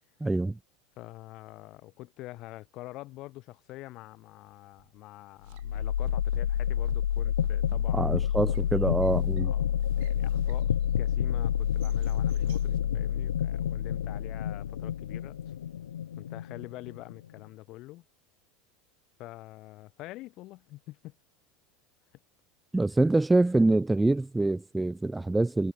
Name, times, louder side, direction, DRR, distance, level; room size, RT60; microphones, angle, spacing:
voice 1, 0.2-0.6 7.9-9.5 22.7-25.7, right 2 dB, 10° right, 0.4 m, -25 dB
voice 2, 1.0-8.3 9.4-9.6 10.0-10.7 11.0-15.4 16.2-18.0 19.2-21.1, left 18 dB, 55° left, 1.5 m, -46 dB
sound 1, 4.8-5.0 5.4-10.9 11.4-12.9, right 30 dB, 65° right, 1.3 m, -53 dB
sound 2, 5.5-17.4, left 10 dB, 85° left, 0.4 m, -29 dB
hypercardioid pair, 90°, 0 cm